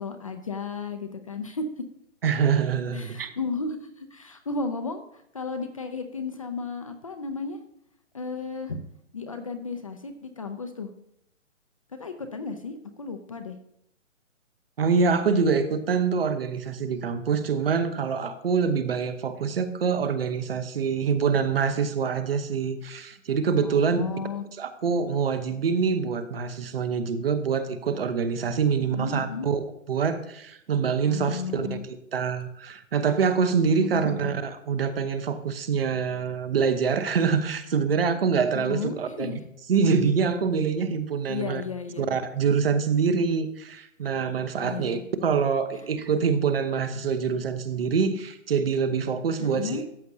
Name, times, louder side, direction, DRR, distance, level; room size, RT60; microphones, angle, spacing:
voice 1, 0.0-1.7 2.9-7.6 8.1-8.8 9.1-10.9 12.0-13.6 23.6-24.4 28.7-29.5 31.0-31.8 33.8-34.4 38.5-39.4 41.3-42.1 44.6-45.0 49.4-49.8, left 4 dB, 25° left, 6 dB, 0.5 m, -34 dB
voice 2, 2.2-3.3 14.8-24.0 24.6-39.3 39.7-41.6 42.0-49.8, right 6 dB, 45° right, 10 dB, 1.0 m, -25 dB
13.5 x 8.3 x 2.8 m, 0.75 s
figure-of-eight pair, 150°, 39 cm